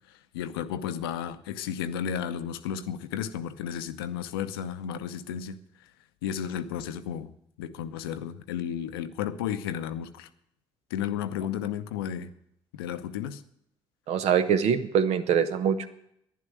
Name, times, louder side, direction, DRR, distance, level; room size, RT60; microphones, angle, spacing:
voice 1, 0.1-5.6 6.2-7.3 7.6-10.3 10.9-12.3 12.7-13.4, left 9 dB, 80° left, 0.6 m, -33 dB
voice 2, 14.1-15.9, right 7 dB, 65° right, 0.9 m, -24 dB
11.0 x 10.5 x 6.9 m
figure-of-eight pair, 45°, 12 cm